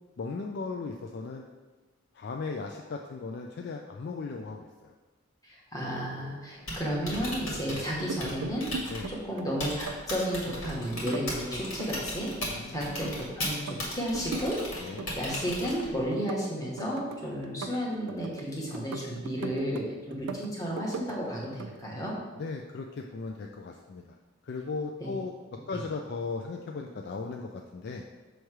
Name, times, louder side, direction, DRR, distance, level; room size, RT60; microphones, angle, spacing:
voice 1, 0.2-1.4 2.1-4.9 8.9-9.1 12.5-12.8 14.8-15.1 19.4-19.8 22.4-24.2 24.4-25.4 25.7-28.0, left 4 dB, 50° left, 2 dB, 0.3 m, -37 dB
voice 2, 5.4-22.2 25.0-25.2, equal, 15° left, -4 dB, 1.1 m, -33 dB
Typing, 6.5-16.1, left 1 dB, 75° left, 1.7 m, -38 dB
sound 1, 8.0-9.4 9.7-10.7 11.0-13.3 13.5-14.5 14.8-15.9 16.1-18.4 18.7-19.8 20.1-21.2 21.4-21.8, right 4 dB, 90° right, 0.4 m, -39 dB
6.5 x 3.1 x 4.7 m, 1.3 s
head